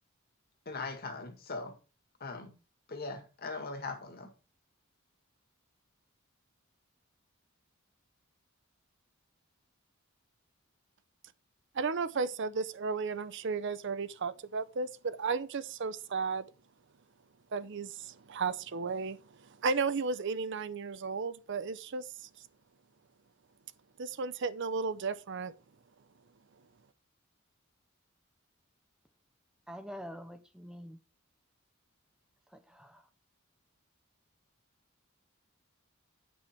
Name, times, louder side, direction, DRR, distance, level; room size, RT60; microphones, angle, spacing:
voice 1, 0.7-1.7 2.2-2.5 2.9-4.3, left 3 dB, 45° left, 2.0 m, -40 dB
voice 2, 11.7-16.4 17.5-19.2 19.6-22.1 24.0-25.5, right 4 dB, 55° right, 0.6 m, -34 dB
voice 3, 29.7-31.0 32.5-33.1, equal, 5° right, 0.4 m, -46 dB
10.0 x 6.2 x 4.4 m
head